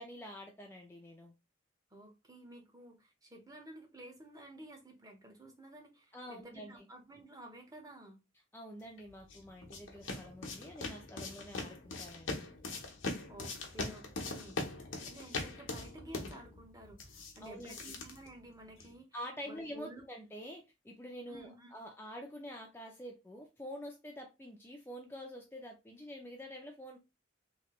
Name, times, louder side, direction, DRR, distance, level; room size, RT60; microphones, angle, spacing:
voice 1, 0.0-1.3 6.1-6.9 8.5-12.5 17.4-18.0 19.1-27.0, equal, 10° left, 0.5 m, -47 dB
voice 2, 1.9-8.2 13.3-14.6 15.0-19.1 19.5-20.0 21.3-21.7, right 1 dB, 20° right, 0.8 m, -52 dB
sound 1, 9.0-19.0, left 3 dB, 85° left, 0.9 m, -42 dB
3.2 x 2.8 x 3.0 m
head